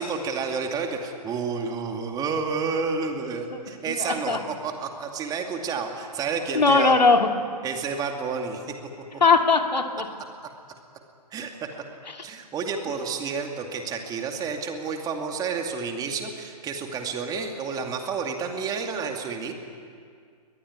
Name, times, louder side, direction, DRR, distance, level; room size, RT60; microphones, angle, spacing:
voice 1, 0.0-6.9 7.6-8.7 11.3-11.5 12.2-19.5, right 5 dB, 20° right, 4 dB, 2.4 m, -30 dB
voice 2, 3.5-4.4 6.5-7.3 9.2-10.1, left 4 dB, 90° left, 5 dB, 2.5 m, -20 dB
23.0 x 20.0 x 9.7 m, 2.2 s
figure-of-eight pair, 130°, 21 cm